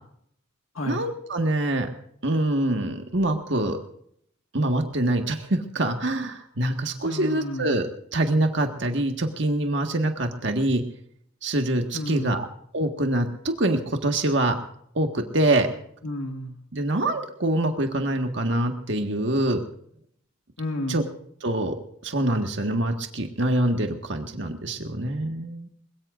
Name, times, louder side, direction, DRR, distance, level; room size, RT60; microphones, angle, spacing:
voice 1, 0.9-1.9 2.2-3.8 4.5-10.8 11.4-12.5 12.7-14.5 15.0-15.7 16.7-19.6 20.9-21.0 21.4-21.8 22.0-25.7, right 1 dB, 60° right, 4 dB, 1.7 m, -25 dB
voice 2, 7.0-7.7 11.9-12.4 16.0-16.5 20.6-21.0, left 1 dB, 80° left, 3 dB, 2.0 m, -31 dB
22.0 x 22.0 x 2.6 m, 0.67 s
head